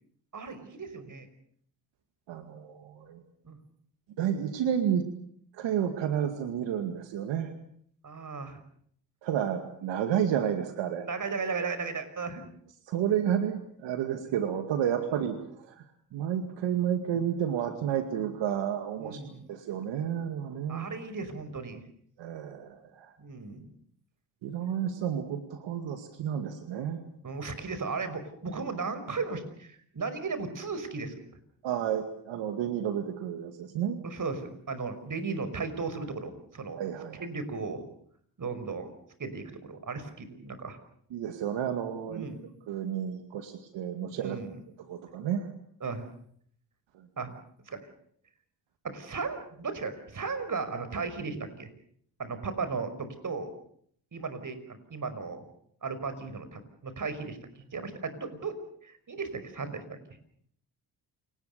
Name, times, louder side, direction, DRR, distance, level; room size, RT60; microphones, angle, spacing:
voice 1, 0.3-1.3 3.4-3.6 8.0-8.6 11.0-12.4 19.0-19.4 20.7-21.8 23.2-23.7 27.2-31.2 34.0-36.8 37.2-37.8 38.4-38.9 39.2-40.8 42.1-42.4 44.1-44.5 45.8-46.0 47.2-47.3 47.7-47.8 48.8-51.7 52.2-53.5 54.1-55.5 55.8-58.5 58.8-59.8, right 4 dB, 45° right, 11 dB, 5.5 m, -36 dB
voice 2, 2.3-3.2 4.2-5.1 5.5-7.5 9.2-11.1 12.9-15.9 16.1-19.2 19.5-20.9 22.2-23.1 24.4-27.0 31.6-34.0 36.8-37.2 41.1-42.3 42.7-44.4 44.9-45.5 46.9-47.1, right 9 dB, 80° right, 7 dB, 2.3 m, -31 dB
28.5 x 19.5 x 6.8 m, 0.64 s
supercardioid pair, 60°, 43 cm